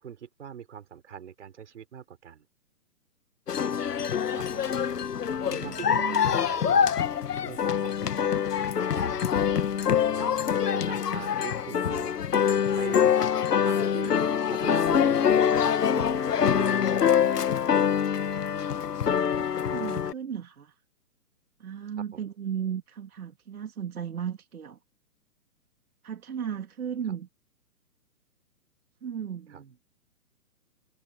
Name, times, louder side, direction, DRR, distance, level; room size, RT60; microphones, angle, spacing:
voice 1, 0.0-2.4 4.3-4.6 5.5-7.0 7.4-8.6 8.9-9.5 10.0-12.1 12.8-13.2 13.6-14.2 14.5-17.2 29.5-29.6, right 8 dB, 50° right, 4.4 m, -42 dB
sound 1, 3.5-20.1, left 8 dB, 85° left, 1.5 m, -25 dB
voice 2, 5.5-6.4 19.4-20.8 21.6-24.8 26.0-27.3 29.0-29.8, right 8 dB, 65° right, 3.2 m, -35 dB
hypercardioid pair, 175°, 47 cm